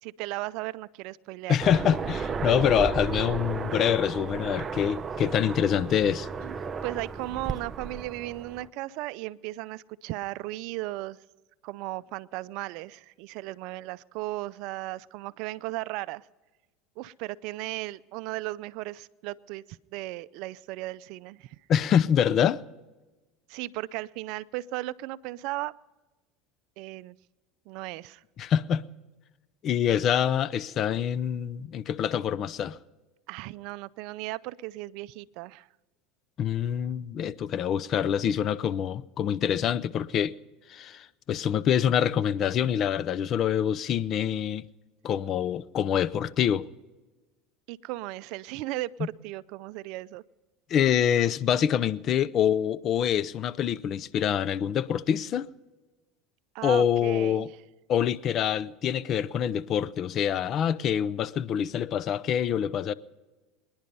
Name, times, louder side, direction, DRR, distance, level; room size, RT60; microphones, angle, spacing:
voice 1, 0.0-1.6 6.4-6.6 6.8-11.2 11.6-16.3 17.0-21.6 23.5-25.7 26.8-27.2 27.7-28.2 33.3-35.7 47.7-50.2 56.5-57.5, right 18 dB, 65° right, 0.4 m, -36 dB
voice 2, 1.5-6.3 21.7-22.6 28.4-28.9 29.6-32.8 36.4-40.3 40.7-44.6 45.0-46.7 50.7-55.5 56.6-57.5 57.9-62.9, left 9 dB, 45° left, 0.6 m, -25 dB
Aircraft, 1.6-8.7, right 5 dB, 25° right, 0.7 m, -34 dB
25.0 x 10.5 x 5.4 m
supercardioid pair, 105°, 0 cm